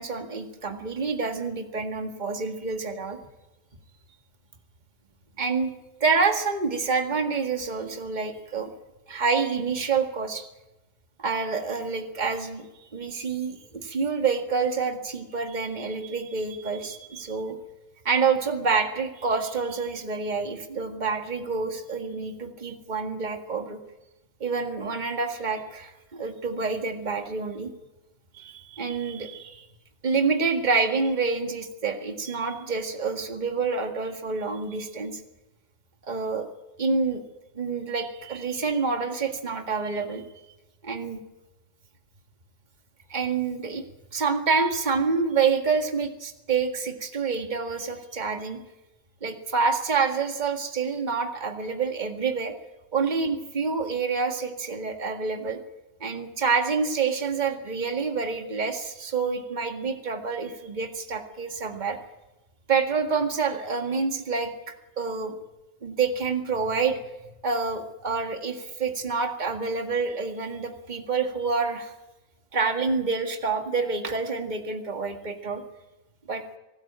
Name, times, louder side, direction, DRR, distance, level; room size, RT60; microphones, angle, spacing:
voice 1, 0.0-3.2 5.4-5.7 6.0-8.7 9.1-10.5 11.2-17.6 18.1-23.8 24.4-27.7 28.3-29.6 30.0-35.2 36.1-36.5 36.8-37.2 37.6-40.2 40.8-41.2 43.1-43.8 44.1-48.6 49.2-52.5 52.9-55.6 56.0-62.0 62.7-65.3 65.8-67.0 67.4-71.9 72.5-75.6 76.3-76.4, right 4 dB, 30° right, 5 dB, 2.0 m, -27 dB
24.0 x 14.0 x 8.8 m, 1.0 s
omnidirectional pair, 1.6 m